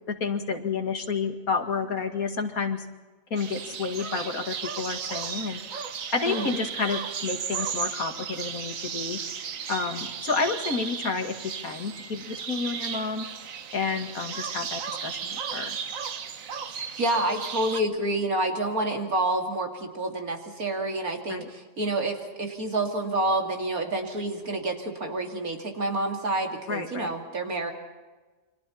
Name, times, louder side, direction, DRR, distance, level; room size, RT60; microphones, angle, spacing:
voice 1, 0.1-2.9 3.3-5.6 6.1-9.2 9.7-13.3 13.7-15.8 21.3-21.5 26.7-27.2, left 4 dB, 85° left, 5 dB, 2.5 m, -30 dB
sound 1, 3.4-17.8, right 7 dB, 70° right, 1.5 m, -35 dB
voice 2, 16.6-27.7, right 2 dB, 90° right, 2 dB, 3.1 m, -28 dB
29.0 x 25.0 x 4.3 m, 1.3 s
omnidirectional pair, 1.5 m